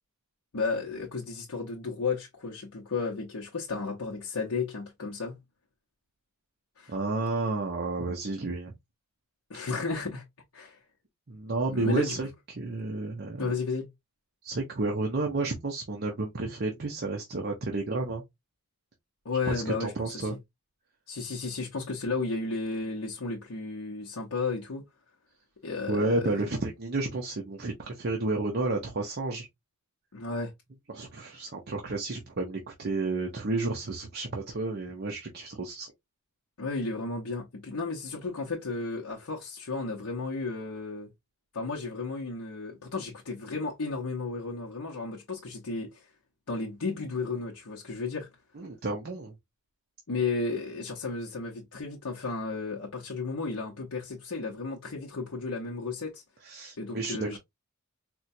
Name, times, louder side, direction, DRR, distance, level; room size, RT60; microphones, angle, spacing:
voice 1, 0.5-5.4 6.8-6.9 9.5-10.2 10.5-10.8 11.7-12.1 13.4-13.9 19.2-20.4 21.1-24.8 25.6-26.3 30.1-30.5 36.6-41.1 41.5-46.1 46.5-48.3 50.1-56.2 56.8-57.4, left 4 dB, 90° left, 0.8 m, -33 dB
voice 2, 6.9-8.7 11.3-12.3 12.5-13.5 14.4-18.2 19.5-20.4 25.9-29.5 30.9-35.9 48.6-49.3 56.4-57.4, right 2 dB, 50° right, 0.7 m, -31 dB
4.4 x 2.2 x 2.6 m
head